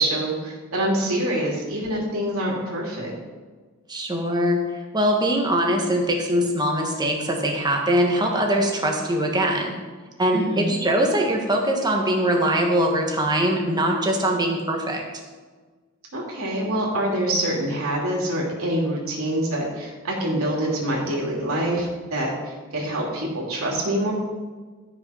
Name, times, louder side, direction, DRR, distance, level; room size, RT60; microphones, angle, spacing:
voice 1, 0.0-3.1 10.3-10.7 16.1-24.1, right 1 dB, 80° right, -3 dB, 2.8 m, -25 dB
voice 2, 3.9-4.6 4.9-9.7 10.2-15.0, right 1 dB, 20° right, 1 dB, 1.6 m, -22 dB
12.5 x 6.0 x 5.6 m, 1.4 s
head